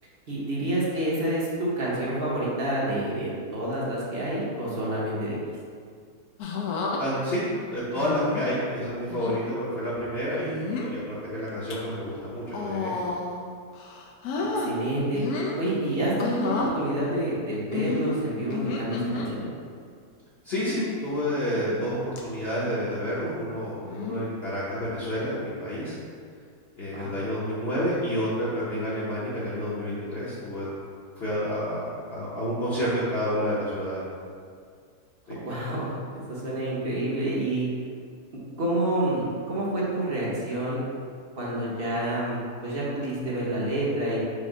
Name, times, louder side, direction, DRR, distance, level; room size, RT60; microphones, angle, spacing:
voice 1, 0.3-5.4 14.5-15.2 15.6-19.5 26.9-27.1 35.4-37.7 38.6-40.8 41.4-42.4 42.6-44.2, right 1 dB, 45° right, -6 dB, 1.0 m, -28 dB
sound 1, 6.4-7.0 8.0-8.5 9.1-9.4 10.4-10.9 11.5-11.7 12.5-13.4 13.7-14.7 15.1-15.6 16.2-16.7 17.7-19.3 20.5-20.9 21.5-21.9 22.2-22.3 23.8-24.2 25.3-25.6, left 3 dB, 85° left, 1.1 m, -31 dB
voice 2, 7.0-7.4 7.7-12.9 20.4-26.0 26.7-30.7 31.2-34.0 35.3-35.4, equal, 50° left, -9 dB, 0.9 m, -29 dB
5.2 x 2.1 x 4.9 m, 2.1 s
omnidirectional pair, 1.6 m